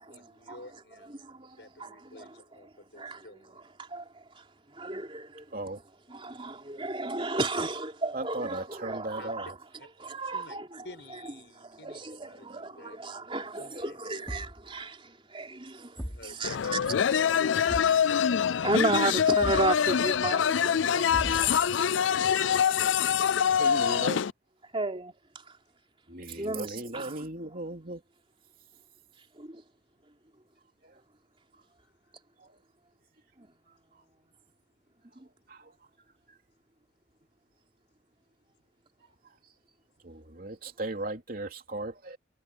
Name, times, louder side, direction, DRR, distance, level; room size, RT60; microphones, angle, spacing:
voice 1, 0.0-1.2 1.6-3.6 9.2-9.3 9.8-9.9 10.2-10.6 10.8-13.0 13.6-14.3 15.9-17.1, left 2 dB, 70° left, 6.3 m, -51 dB
voice 2, 1.1-2.4 3.0-3.3 3.8-5.6 6.1-9.5 10.0-10.9 11.6-16.8 17.1-17.2 18.3-18.4 18.6-23.5 24.7-25.6 26.3-27.3 29.3-29.6 33.4-33.5 35.2-35.3, right 2 dB, 30° right, 3.4 m, -34 dB
voice 3, 8.1-9.5 23.5-24.2 26.1-28.0 30.8-31.0 32.4-32.5 35.5-35.7 40.0-42.2, right 2 dB, 50° right, 3.3 m, -37 dB
Thump thud, 14.3-14.7 16.0-16.3 17.7-18.0 19.4-19.8 21.1-21.7, equal, 10° left, 4.7 m, -37 dB
sound 1, 16.4-24.3, left 8 dB, 90° left, 0.4 m, -25 dB
head